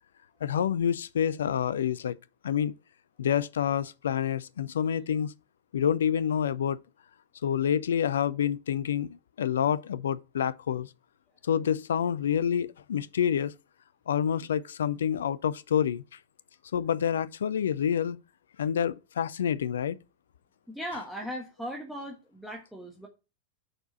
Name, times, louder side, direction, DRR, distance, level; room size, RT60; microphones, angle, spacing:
voice 1, 0.4-2.2 2.4-2.7 3.2-5.3 5.7-6.8 7.4-9.1 9.4-10.9 11.4-13.5 14.1-16.0 16.7-18.2 18.6-20.0, left 8 dB, 65° left, 0.5 m, -27 dB
voice 2, 20.7-23.1, equal, ahead, 1.4 m, -38 dB
6.6 x 4.6 x 5.6 m
figure-of-eight pair, 90°, 0 cm